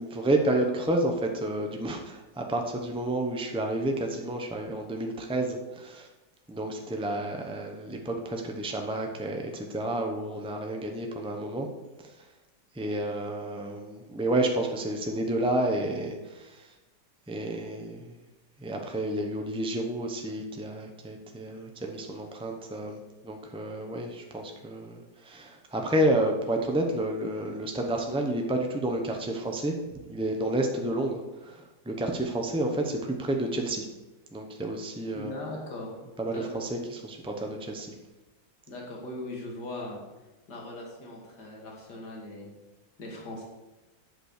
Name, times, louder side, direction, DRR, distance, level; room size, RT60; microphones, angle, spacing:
voice 1, 0.0-6.1 6.5-11.7 12.8-16.6 17.3-18.1 18.6-23.0 23.2-29.7 30.1-33.9 34.3-35.3 36.2-37.9, right 1 dB, 10° right, 2 dB, 0.3 m, -30 dB
voice 2, 35.1-35.9 36.2-36.5 38.7-40.0 40.5-42.5 43.0-43.4, left 1 dB, 70° left, -1 dB, 2.8 m, -39 dB
8.1 x 6.1 x 6.6 m, 1.1 s
omnidirectional pair, 1.9 m